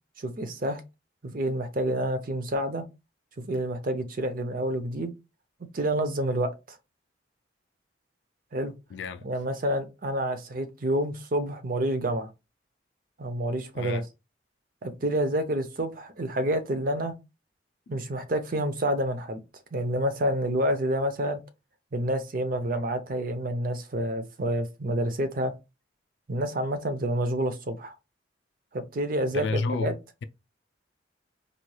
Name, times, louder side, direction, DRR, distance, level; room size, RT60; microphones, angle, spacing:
voice 1, 0.2-0.8 1.2-2.8 3.4-5.1 5.7-6.8 8.5-8.7 9.2-12.3 13.2-14.0 14.8-17.1 17.9-19.4 19.7-21.4 21.9-25.5 26.3-27.9 28.7-29.9, right 1 dB, 50° right, 0.6 m, -28 dB
voice 2, 8.9-9.3 13.7-14.0 29.3-30.2, left 3 dB, 65° left, 0.3 m, -31 dB
4.1 x 3.1 x 2.2 m
head